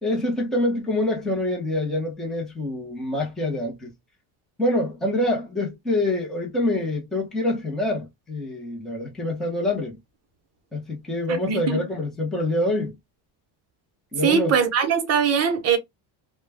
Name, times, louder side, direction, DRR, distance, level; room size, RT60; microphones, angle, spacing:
voice 1, 0.0-3.9 4.6-10.0 10.7-13.0 14.1-14.5, left 1 dB, ahead, 0.6 m, -26 dB
voice 2, 11.5-11.8 14.2-15.8, right 7 dB, 30° right, 0.7 m, -21 dB
2.3 x 2.1 x 3.3 m
cardioid pair, 155°, 50 cm